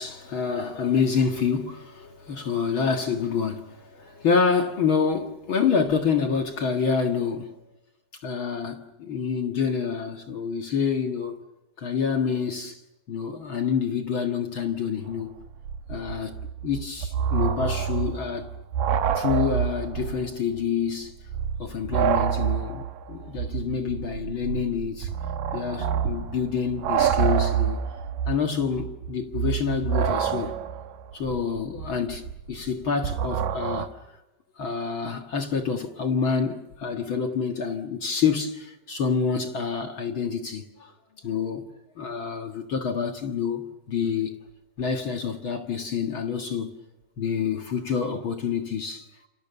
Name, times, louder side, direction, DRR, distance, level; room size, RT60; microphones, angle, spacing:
voice 1, 0.0-7.5 8.2-11.4 11.8-12.8 13.1-15.4 15.9-18.5 19.1-21.1 21.6-25.1 25.5-27.8 28.3-30.5 31.1-33.9 34.6-40.9 41.2-41.6 42.0-44.3 44.8-46.7 47.2-49.1, left 6 dB, 45° left, 2.0 m, -27 dB
sound 1, 15.1-15.2 15.4-20.3 20.6-20.7 21.2-33.9, right 8 dB, 80° right, 2.9 m, -27 dB
29.0 x 29.0 x 7.0 m
omnidirectional pair, 3.9 m